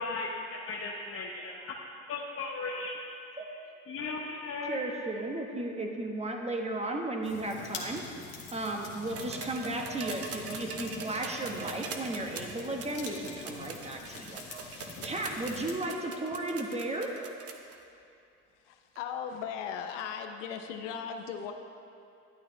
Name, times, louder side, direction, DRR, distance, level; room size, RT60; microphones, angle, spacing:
voice 1, 0.0-1.8 2.1-3.0 3.9-4.8, left 3 dB, 40° left, -2 dB, 1.0 m, -36 dB
voice 2, 4.7-8.0 8.5-14.4 14.7-17.1, right 2 dB, 20° right, 2 dB, 1.3 m, -35 dB
sound 1, 7.2-15.8, left 4 dB, 60° left, 1.8 m, -45 dB
sound 2, 9.1-17.8 19.0-19.1, right 5 dB, 40° right, 1.0 m, -42 dB
voice 3, 18.6-21.5, left 7 dB, 85° left, 6 dB, 0.8 m, -38 dB
12.0 x 8.8 x 3.2 m, 2.5 s
supercardioid pair, 80°, 35 cm